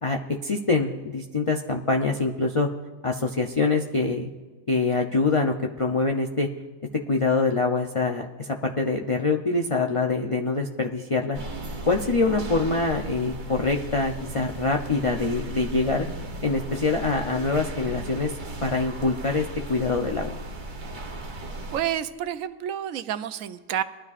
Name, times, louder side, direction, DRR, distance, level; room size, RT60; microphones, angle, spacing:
voice 1, 0.0-2.7 3.0-4.3 4.7-6.5 7.1-11.4 11.8-16.1 16.4-18.3 18.6-20.4, left 3 dB, 45° left, 2 dB, 0.4 m, -25 dB
sound 1, 11.3-21.8, right 1 dB, 40° right, 1.0 m, -36 dB
voice 2, 21.7-23.8, right 10 dB, 75° right, 12 dB, 1.0 m, -29 dB
20.5 x 12.0 x 2.4 m, 1.4 s
omnidirectional pair, 1.4 m